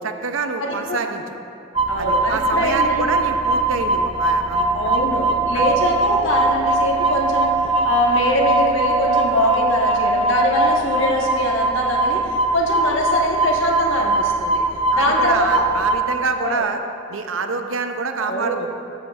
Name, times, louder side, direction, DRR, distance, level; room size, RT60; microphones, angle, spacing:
voice 1, 0.0-1.4 2.0-4.8 5.5-5.7 14.9-16.8 17.1-18.7, right 4 dB, 90° right, 7 dB, 0.6 m, -26 dB
voice 2, 0.6-1.0 1.9-3.0 4.7-7.5 7.8-14.6 14.9-15.7 16.4-16.7 18.2-18.7, equal, 75° left, -1 dB, 1.2 m, -23 dB
sound 1, 1.7-15.9, right 2 dB, 25° right, 0.6 m, -21 dB
13.5 x 7.9 x 2.4 m, 2.7 s
head